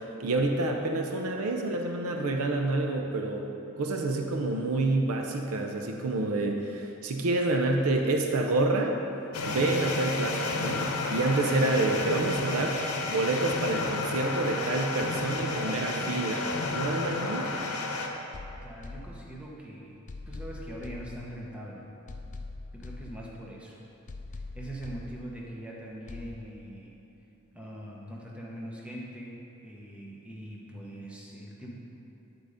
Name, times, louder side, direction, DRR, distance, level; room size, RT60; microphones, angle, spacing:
voice 1, 0.2-3.5 3.8-9.0 9.5-12.8 13.1-16.4 16.7-17.5, right 2 dB, 75° right, 3 dB, 0.6 m, -28 dB
sound 1, 9.3-18.1, left 3 dB, 90° left, 0.8 m, -32 dB
voice 2, 15.3-16.3 18.6-20.0 20.3-21.8 22.7-23.8 24.5-26.9 27.5-31.8, right 1 dB, 5° right, -3 dB, 1.0 m, -42 dB
sound 2, 18.3-19.6 20.1-21.6 22.1-23.6 24.1-25.6 26.1-26.3, left 2 dB, 35° left, 0.5 m, -43 dB
10.5 x 4.0 x 5.0 m, 2.9 s
head